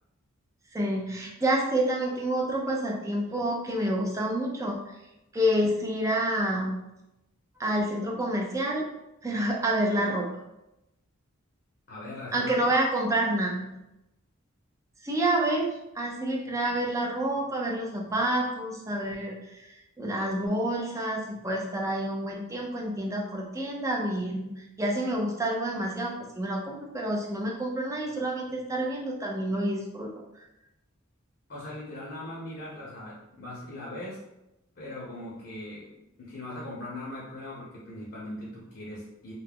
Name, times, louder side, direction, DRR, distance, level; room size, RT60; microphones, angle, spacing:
voice 1, 0.7-4.8 5.3-6.9 7.6-8.9 9.2-10.3 12.3-13.8 15.0-30.1, right 1 dB, 15° right, -1 dB, 0.4 m, -28 dB
voice 2, 11.9-12.7 31.5-34.2 34.8-39.3, left 1 dB, 50° left, -6 dB, 0.6 m, -40 dB
2.3 x 2.0 x 3.4 m, 0.91 s
head